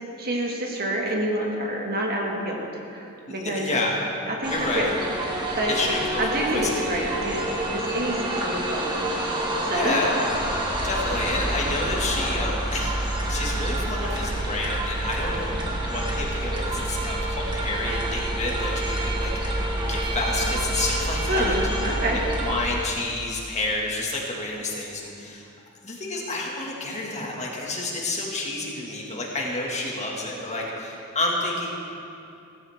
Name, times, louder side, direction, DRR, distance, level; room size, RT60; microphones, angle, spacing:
voice 1, 0.0-3.7 4.3-5.0 5.6-5.8 6.2-10.0 21.3-22.2, right 1 dB, 45° right, -1 dB, 2.0 m, -28 dB
voice 2, 3.3-4.0 4.5-4.9 5.7-7.0 9.7-10.2 10.5-21.5 22.4-25.5 25.8-31.7, left 2 dB, 30° left, -2 dB, 2.0 m, -29 dB
sound 1, 4.4-22.7, right 1 dB, 20° right, 1.7 m, -28 dB
17.0 x 14.5 x 3.6 m, 2.6 s
head